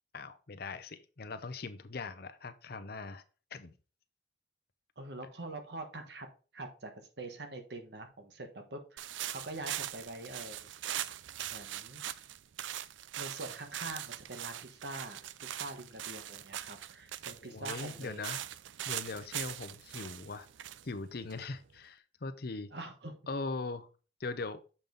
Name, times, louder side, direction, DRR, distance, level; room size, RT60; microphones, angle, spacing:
voice 1, 0.1-3.2 3.5-3.7 17.4-18.4 18.9-20.5 20.8-22.7 23.3-23.9 24.2-24.6, left 3 dB, 55° left, 10 dB, 0.7 m, -40 dB
voice 2, 5.0-6.3 6.5-10.7 11.5-12.0 13.2-18.3 22.7-23.2, right 2 dB, 60° right, 6 dB, 1.3 m, -44 dB
sound 1, 9.0-21.8, right 12 dB, 90° right, 0.4 m, -41 dB
7.1 x 5.4 x 3.9 m, 0.34 s
head